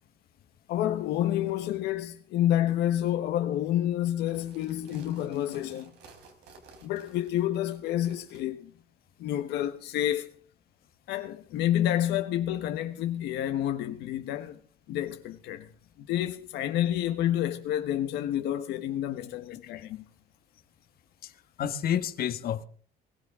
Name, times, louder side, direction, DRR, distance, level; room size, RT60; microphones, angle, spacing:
voice 1, 0.7-5.9 6.8-8.7 9.2-10.3 11.1-14.6 14.9-15.7 16.0-20.1, left 12 dB, 85° left, 1.3 m, -29 dB
sound 1, 4.1-8.4, right 4 dB, 80° right, 4.5 m, -54 dB
voice 2, 21.6-22.6, left 9 dB, 65° left, 1.5 m, -30 dB
21.0 x 16.0 x 3.7 m
cardioid pair, 110°, 17 cm